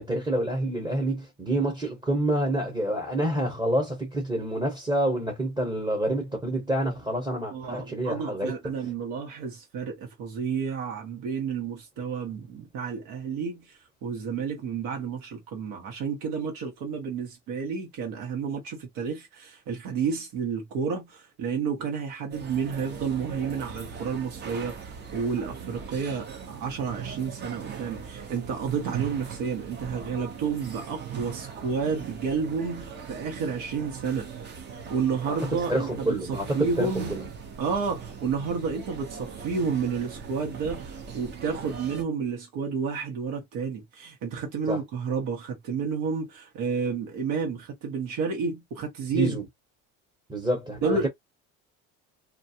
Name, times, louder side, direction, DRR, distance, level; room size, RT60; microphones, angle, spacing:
voice 1, 0.0-8.5 35.3-35.4 35.7-37.3 44.7-44.8 49.1-49.4 50.3-51.1, right 1 dB, 15° right, 1.1 m, -27 dB
voice 2, 7.5-34.3 34.7-37.2 37.6-49.4 50.8-51.1, right 5 dB, 85° right, 1.2 m, -31 dB
sound 1, 22.3-42.0, right 6 dB, 35° right, 0.7 m, -40 dB
2.5 x 2.2 x 2.7 m
cardioid pair, 135°, 31 cm